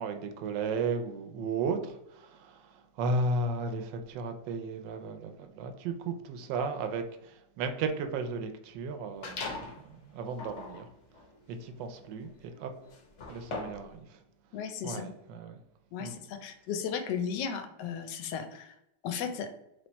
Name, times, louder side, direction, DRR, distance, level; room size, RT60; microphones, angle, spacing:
voice 1, 0.0-10.9 11.5-12.7 13.3-14.2 14.8-15.6 16.0-16.2, right 3 dB, 75° right, 7 dB, 1.2 m, -35 dB
sound 1, 9.2-9.8 10.3-13.9, left 3 dB, 55° left, 0.8 m, -41 dB
voice 2, 14.5-15.1 15.9-18.7 19.0-19.5, left 7 dB, 75° left, 8 dB, 1.1 m, -35 dB
3.3 x 3.3 x 4.0 m, 0.83 s
omnidirectional pair, 2.0 m